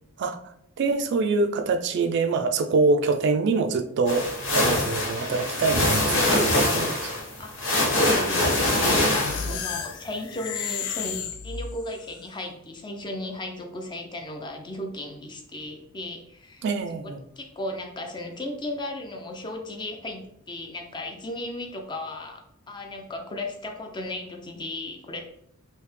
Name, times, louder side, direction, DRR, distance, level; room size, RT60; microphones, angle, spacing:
voice 1, 0.8-4.3 4.5-7.0 9.4-9.6 16.6-17.2, right 3 dB, 55° right, 7 dB, 0.3 m, -25 dB
sound 1, 4.1-9.7, left 1 dB, 65° left, 1.2 m, -23 dB
voice 2, 7.4-16.6 17.0-22.4 22.7-25.2, left 1 dB, 20° left, 3 dB, 0.5 m, -35 dB
sound 2, 8.8-12.1, left 7 dB, 80° left, 0.4 m, -33 dB
3.2 x 2.7 x 3.2 m, 0.75 s
head